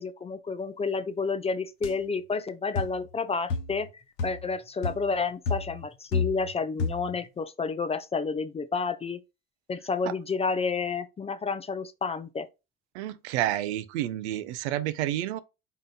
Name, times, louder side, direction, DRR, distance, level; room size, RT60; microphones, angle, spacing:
voice 1, 0.0-3.9 4.2-9.2 9.7-12.5, left 4 dB, 20° left, 0.4 m, -30 dB
sound 1, 1.8-2.0 2.7-3.0 3.5-3.8 4.2-4.5 4.8-5.1 5.5-6.5 6.8-7.2, left 4 dB, 70° left, 1.0 m, -31 dB
voice 2, 12.9-15.4, right 13 dB, 75° right, 0.6 m, -30 dB
3.9 x 3.8 x 2.2 m
hypercardioid pair, 65°, 34 cm